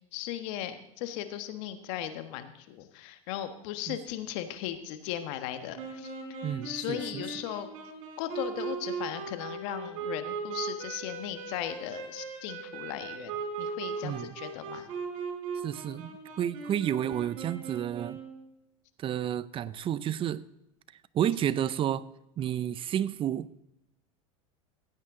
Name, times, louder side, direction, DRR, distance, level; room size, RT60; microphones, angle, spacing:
voice 1, 0.1-6.1 6.6-7.7 8.2-14.9, left 11 dB, 65° left, 1.4 m, -37 dB
sound 1, 5.8-18.4, right 5 dB, 65° right, 4.1 m, -38 dB
voice 2, 6.4-7.2 14.0-14.4 15.6-16.1 16.4-18.2 19.0-20.4 21.1-22.1 22.4-23.6, right 10 dB, 30° right, 0.6 m, -31 dB
16.0 x 8.9 x 3.8 m
hypercardioid pair, 105°, 17 cm